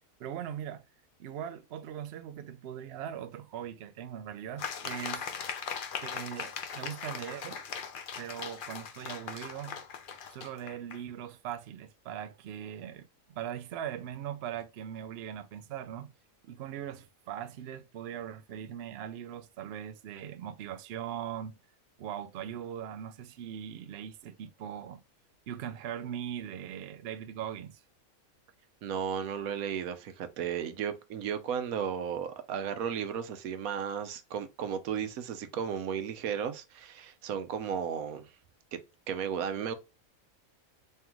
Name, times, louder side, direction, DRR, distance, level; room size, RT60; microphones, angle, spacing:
voice 1, 0.2-0.8 1.2-5.3 6.0-7.6 8.2-9.8 10.3-16.1 16.4-21.6 22.0-25.0 25.5-27.8, right 9 dB, 65° right, 0.7 m, -40 dB
sound 1, 4.6-11.0, left 6 dB, 55° left, 0.6 m, -39 dB
voice 2, 28.8-38.3 39.1-39.7, right 8 dB, 80° right, 1.1 m, -34 dB
3.6 x 3.4 x 2.9 m
omnidirectional pair, 1.5 m